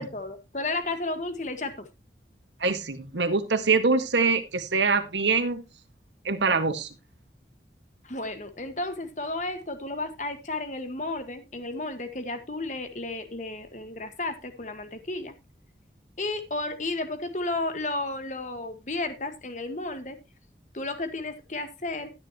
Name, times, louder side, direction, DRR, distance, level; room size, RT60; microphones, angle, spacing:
voice 1, 0.0-1.9 8.0-15.3 16.2-20.2 20.7-22.1, left 2 dB, 45° left, 8 dB, 1.6 m, -33 dB
voice 2, 2.6-5.6 6.2-6.9, right 4 dB, 90° right, 8 dB, 1.7 m, -24 dB
12.5 x 10.0 x 3.0 m, 0.25 s
head